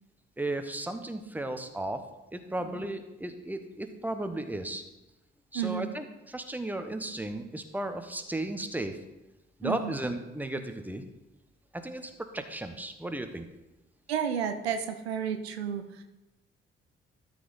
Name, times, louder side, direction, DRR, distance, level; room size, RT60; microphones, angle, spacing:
voice 1, 0.4-2.0 2.3-4.8 5.5-9.0 9.6-11.0 11.7-13.5, right 1 dB, 5° right, 7 dB, 1.1 m, -35 dB
voice 2, 5.5-5.9 9.6-9.9 14.1-16.0, right 8 dB, 85° right, 7 dB, 0.6 m, -32 dB
12.5 x 5.1 x 4.1 m, 1.0 s
figure-of-eight pair, 45°, 31 cm